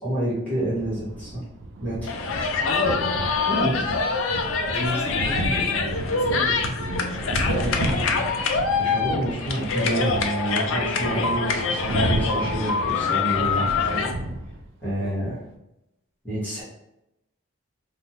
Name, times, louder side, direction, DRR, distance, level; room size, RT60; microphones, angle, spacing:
voice 1, 0.0-1.4 1.8-2.1 3.5-3.8 7.5-8.0 8.8-14.1 14.8-15.4 16.2-16.6, right 1 dB, 5° left, -10 dB, 1.1 m, -28 dB
sound 1, 0.6-14.9, right 1 dB, 60° right, 0.4 m, -33 dB
sound 2, 2.1-14.1, left 4 dB, 75° left, 0.4 m, -25 dB
voice 2, 2.6-3.1 4.7-8.3 15.0-15.1, left 1 dB, 30° right, -9 dB, 1.2 m, -33 dB
2.5 x 2.1 x 3.0 m, 0.87 s
head